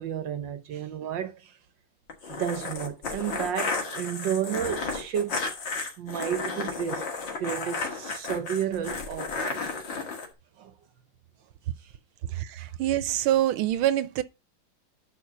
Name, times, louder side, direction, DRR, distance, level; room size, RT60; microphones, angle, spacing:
voice 1, 0.0-1.6 2.2-5.4 6.0-7.1 7.4-9.7 10.6-10.7 11.8-11.9 12.6-12.7, right 9 dB, 65° right, 1.4 m, -32 dB
sound 1, 2.1-10.3, left 4 dB, 65° left, 2.5 m, -33 dB
voice 2, 12.3-14.2, right 13 dB, 85° right, 1.5 m, -25 dB
10.5 x 4.2 x 5.9 m
omnidirectional pair, 2.3 m